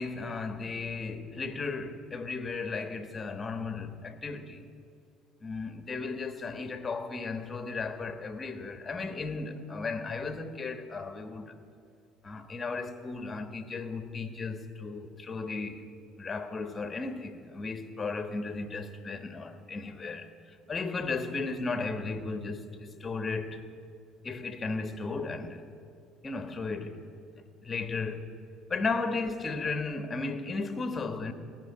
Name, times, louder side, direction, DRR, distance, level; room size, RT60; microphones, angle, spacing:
voice 1, 0.0-4.6 5.4-11.5 12.2-15.8 16.2-20.3 20.7-23.6 24.2-25.6 26.2-27.0 27.6-28.4 28.7-31.3, left 4 dB, 30° left, 1.3 m, -35 dB
16.0 x 6.4 x 9.9 m
hypercardioid pair, 70°, 0 cm